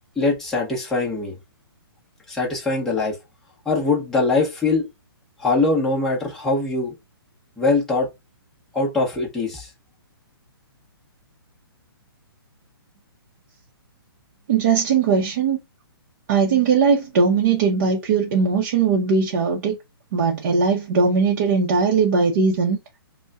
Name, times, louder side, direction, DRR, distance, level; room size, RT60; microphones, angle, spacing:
voice 1, 0.2-1.4 2.3-3.2 3.6-4.9 5.4-6.9 7.6-8.1 8.7-9.7, left 3 dB, 5° left, 0.9 m, -22 dB
voice 2, 14.5-15.6 16.3-19.7 20.1-22.8, right 5 dB, 40° right, 0.7 m, -19 dB
5.2 x 2.1 x 2.4 m
hypercardioid pair, 160°, 13 cm